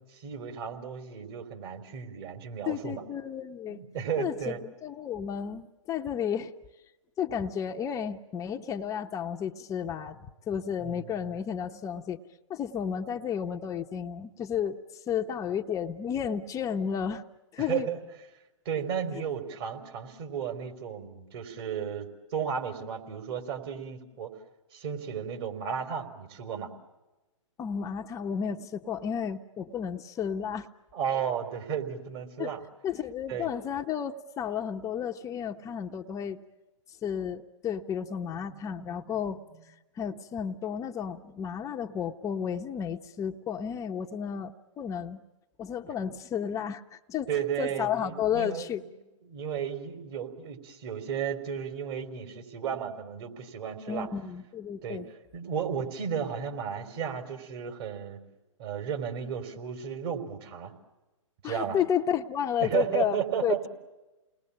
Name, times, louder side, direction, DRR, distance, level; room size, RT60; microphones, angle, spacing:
voice 1, 0.0-3.0 3.7-4.6 10.8-11.4 17.6-18.0 18.6-24.3 24.7-26.7 30.9-32.6 33.3-33.5 38.4-39.0 47.3-48.7 49.2-54.1 54.8-55.0 55.3-58.2 58.6-60.7 61.4-61.8 62.6-63.6, right 8 dB, 50° right, 5 dB, 4.3 m, -34 dB
voice 2, 2.7-3.8 4.2-6.5 7.2-12.2 12.5-17.2 17.5-17.9 27.6-30.7 32.4-32.5 32.8-36.4 37.0-39.4 40.0-45.2 45.6-47.3 47.6-48.8 53.9-55.1 61.4-63.7, left 8 dB, 20° left, 4 dB, 0.9 m, -32 dB
29.5 x 20.5 x 8.6 m, 1.1 s
hypercardioid pair, 125°, 17 cm